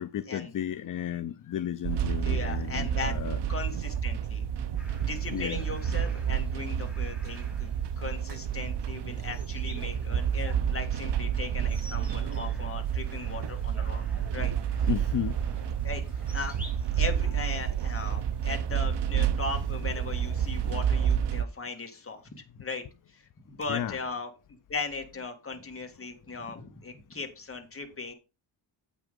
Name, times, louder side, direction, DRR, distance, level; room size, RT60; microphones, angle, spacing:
voice 1, 0.0-3.4 5.3-5.7 14.9-15.4 23.7-24.0, left 10 dB, 45° left, 0.5 m, -33 dB
sound 1, 1.8-21.4, right 9 dB, 60° right, 0.7 m, -29 dB
voice 2, 2.2-3.1 3.5-4.5 5.1-7.7 8.0-14.5 14.8-14.9 15.8-16.0 16.3-22.8 23.1-24.3 24.7-28.1, left 4 dB, 30° left, 1.9 m, -38 dB
sound 2, 4.8-20.9, equal, ahead, 2.7 m, -54 dB
8.3 x 6.2 x 5.1 m
wide cardioid pair, 145°, 46 cm